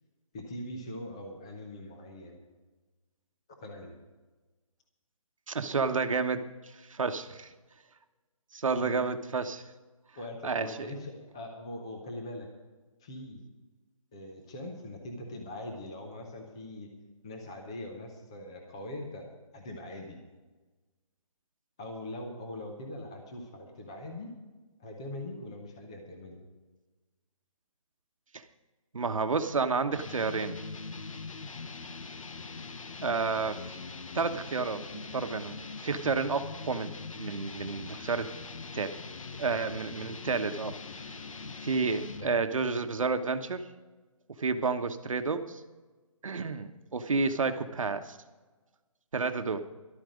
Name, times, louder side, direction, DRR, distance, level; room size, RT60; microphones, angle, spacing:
voice 1, 0.3-2.4 3.6-4.0 8.8-9.0 10.2-12.5 13.0-13.4 14.1-16.9 17.2-19.3 19.5-20.2 21.8-24.3 24.8-26.4, left 1 dB, 10° left, 3 dB, 0.6 m, -41 dB
voice 2, 5.5-7.5 8.5-9.6 10.4-10.9 28.3-28.4 28.9-30.6 33.0-33.8 34.1-34.8 35.1-36.9 37.2-38.3 38.7-39.0 39.4-40.8 41.6-43.6 44.4-45.6 46.2-48.2 49.1-49.6, right 4 dB, 65° right, 8 dB, 1.1 m, -30 dB
sound 1, 29.9-42.5, left 4 dB, 65° left, 1.1 m, -42 dB
13.0 x 12.0 x 5.1 m, 1.2 s
hypercardioid pair, 175°, 18 cm